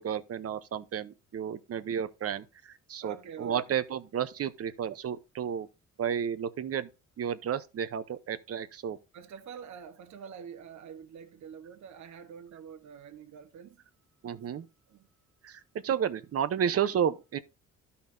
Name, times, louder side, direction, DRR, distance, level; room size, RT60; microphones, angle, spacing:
voice 1, 0.0-5.7 6.0-6.9 7.2-9.0 14.2-14.7 15.4-17.4, right 8 dB, 50° right, 0.9 m, -32 dB
voice 2, 3.0-3.6 9.1-13.8 14.9-15.1, right 7 dB, 70° right, 1.2 m, -46 dB
12.5 x 5.6 x 2.7 m
cardioid pair, 90°, 30 cm